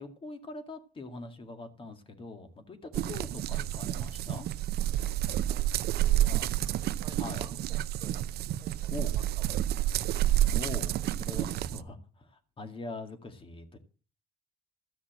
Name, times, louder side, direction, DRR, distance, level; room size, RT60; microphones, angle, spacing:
voice 1, 0.0-4.5 7.2-7.5 8.9-9.2 10.5-13.8, left 2 dB, 30° left, 2.0 m, -43 dB
sound 1, 2.9-11.8, right 13 dB, 70° right, 0.7 m, -29 dB
voice 2, 5.4-6.5 7.0-7.6 8.0-8.2 8.6-10.3, right 4 dB, 25° right, 1.9 m, -53 dB
13.5 x 6.2 x 7.6 m
cardioid pair, 110°, 17 cm